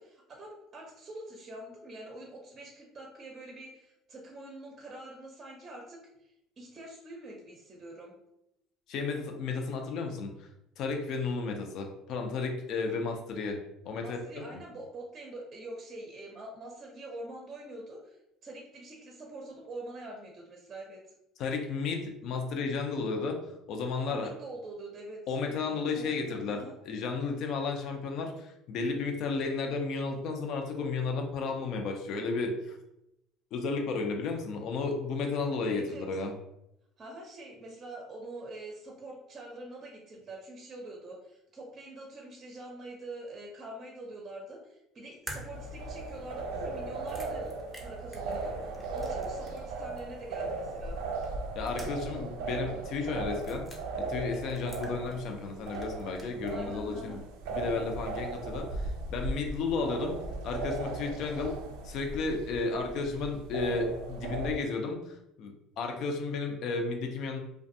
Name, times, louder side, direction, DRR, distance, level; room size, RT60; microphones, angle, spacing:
voice 1, 0.0-8.1 14.0-21.0 24.1-26.7 35.7-36.1 37.0-47.5 47.8-51.0 56.5-57.2, right 2 dB, 35° right, -1 dB, 0.6 m, -45 dB
voice 2, 8.9-10.5 10.8-13.6 13.8-14.4 21.4-23.4 23.7-24.3 25.3-32.8 33.5-36.3 51.5-53.7 54.0-57.2 57.5-60.2 60.4-61.5 61.8-67.4, left 4 dB, 60° left, 3 dB, 0.5 m, -33 dB
sound 1, 45.3-49.7 50.0-50.1 51.2-52.2 52.5-52.6 53.3-53.8 54.3-55.4 55.7-56.6, left 1 dB, ahead, 0.7 m, -48 dB
sound 2, 45.5-64.5, right 3 dB, 90° right, 0.4 m, -37 dB
2.5 x 2.2 x 2.6 m, 0.83 s
supercardioid pair, 100°, 0 cm